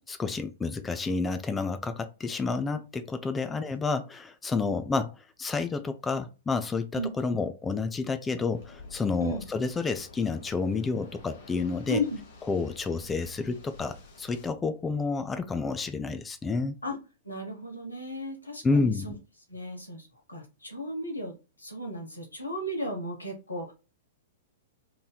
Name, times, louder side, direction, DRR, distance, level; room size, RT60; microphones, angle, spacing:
voice 1, 0.2-12.0 12.5-16.8 18.6-19.1, left 4 dB, 15° left, 0.3 m, -30 dB
Waves surf, 8.5-14.5, left 3 dB, 55° left, 1.0 m, -49 dB
voice 2, 11.9-12.2 16.8-17.0 17.2-19.1 19.5-21.3 21.6-23.7, equal, 85° left, 1.0 m, -34 dB
3.0 x 2.6 x 2.3 m
figure-of-eight pair, 105°, 0 cm